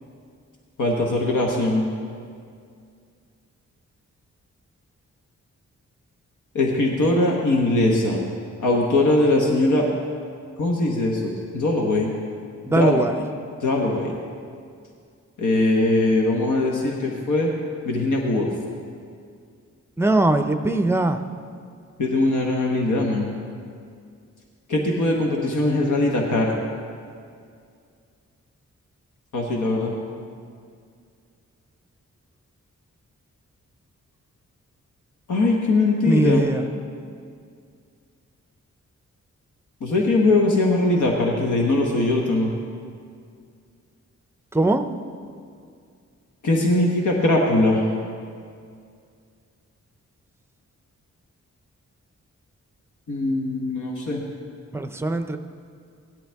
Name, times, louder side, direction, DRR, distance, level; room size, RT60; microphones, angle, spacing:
voice 1, 0.8-1.8 6.5-8.2 8.6-9.9 10.6-12.1 12.7-13.0 13.6-14.1 15.4-17.5 17.8-18.6 22.0-23.3 24.7-26.6 29.3-29.9 35.3-36.4 39.8-42.5 46.4-47.9 53.1-54.2, left 2 dB, 90° left, -1 dB, 1.3 m, -21 dB
voice 2, 12.6-13.2 20.0-21.2 36.0-36.6 44.5-44.9 54.7-55.4, right 2 dB, 10° right, 8 dB, 0.5 m, -21 dB
16.5 x 11.5 x 3.5 m, 2.3 s
wide cardioid pair, 150°, 29 cm